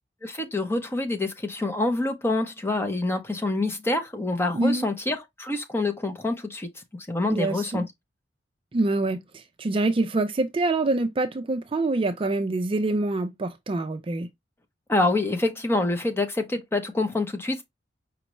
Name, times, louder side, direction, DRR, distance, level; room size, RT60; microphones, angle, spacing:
voice 1, 0.2-7.9 14.9-17.6, left 2 dB, 15° left, 0.6 m, -26 dB
voice 2, 4.5-4.9 7.3-7.9 8.7-14.3, right 2 dB, 30° right, 0.4 m, -25 dB
5.1 x 2.3 x 3.1 m
head